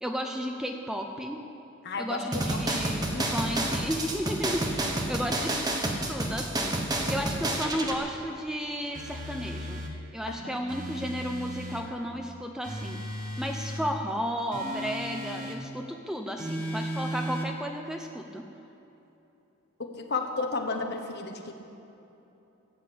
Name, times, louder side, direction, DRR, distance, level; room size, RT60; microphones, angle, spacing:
voice 1, 0.0-1.4 2.0-5.5 6.1-9.8 10.1-13.0 13.4-18.4, equal, 5° right, 3 dB, 0.6 m, -33 dB
voice 2, 1.8-2.2 2.7-3.3 10.3-10.6 19.8-21.5, left 3 dB, 50° left, 4 dB, 1.2 m, -33 dB
sound 1, 2.3-8.0, right 1 dB, 20° right, 1.1 m, -29 dB
sound 2, 8.9-10.0 10.7-11.9 12.6-13.9 14.5-15.6 16.4-17.5, equal, 40° right, 1.5 m, -36 dB
14.5 x 8.2 x 8.5 m, 2.9 s
head